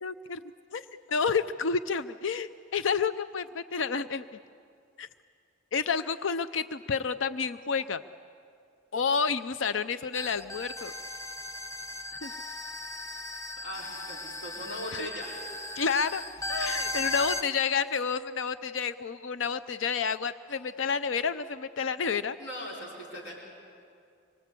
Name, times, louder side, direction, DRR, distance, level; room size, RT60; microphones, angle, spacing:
voice 1, 0.0-0.4 0.7-0.8 1.1-4.2 5.0-5.1 5.7-8.0 8.9-10.9 12.2-12.3 14.9-15.1 15.8-16.2 16.5-22.4, left 5 dB, 90° left, 13 dB, 0.6 m, -30 dB
sound 1, 10.1-17.4, left 1 dB, 15° left, 0.9 m, -37 dB
voice 2, 13.6-15.3 20.5-20.6 22.4-23.4, equal, 65° left, -2 dB, 4.9 m, -39 dB
26.5 x 23.5 x 8.4 m, 2.4 s
head